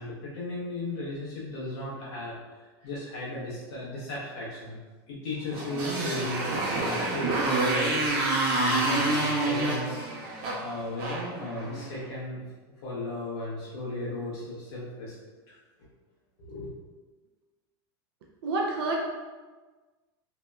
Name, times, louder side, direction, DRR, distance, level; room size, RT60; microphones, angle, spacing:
voice 1, 0.0-2.3 2.8-4.8 5.1-8.0 8.5-10.1 10.6-12.4 12.8-15.1 15.5-15.9 16.4-16.7, left 2 dB, 75° left, -7 dB, 0.7 m, -35 dB
Motorcycle, 5.5-12.0, right 2 dB, 60° right, 0.8 m, -28 dB
voice 2, 18.4-18.9, right 3 dB, 75° right, -1 dB, 0.4 m, -28 dB
2.8 x 2.0 x 2.2 m, 1.3 s
supercardioid pair, 120°, 13 cm